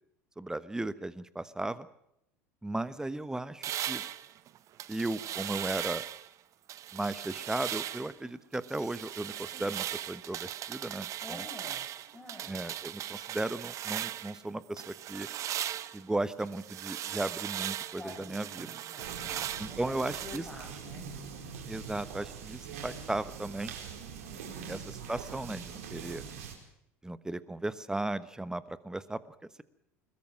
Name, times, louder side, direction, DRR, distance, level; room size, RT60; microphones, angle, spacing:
voice 1, 0.4-1.9 2.6-4.0 4.9-6.0 6.9-11.4 12.5-15.3 15.9-18.7 19.6-20.4 21.7-23.7 24.7-26.2 27.0-29.6, right 2 dB, 10° right, 15 dB, 1.1 m, -36 dB
sound 1, 3.6-6.3 6.7-8.2 8.5-14.4 14.8-20.4, right 12 dB, 40° right, 0.9 m, -38 dB
voice 2, 11.2-11.9 12.1-12.6 17.8-21.1 24.2-24.7, left 2 dB, 10° left, 1 dB, 5.2 m, -49 dB
sound 2, 19.0-26.5, right 7 dB, 65° right, 4.4 m, -43 dB
21.5 x 21.0 x 6.4 m, 0.78 s
figure-of-eight pair, 70°, 8 cm